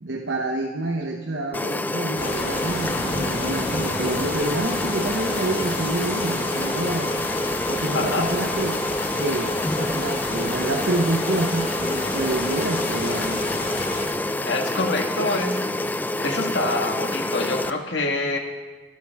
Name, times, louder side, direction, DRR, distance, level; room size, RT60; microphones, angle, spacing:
voice 1, 0.0-7.1 7.7-8.8 9.2-13.5, right 2 dB, 70° right, 1 dB, 1.0 m, -28 dB
sound 1, 1.5-17.7, left 1 dB, 10° left, 0.4 m, -27 dB
sound 2, 2.2-14.1, left 2 dB, 45° left, 2.5 m, -31 dB
voice 2, 7.9-8.3 14.4-15.6 16.2-18.4, left 2 dB, 70° left, 3 dB, 1.7 m, -26 dB
24.5 x 9.7 x 3.6 m, 1.2 s
head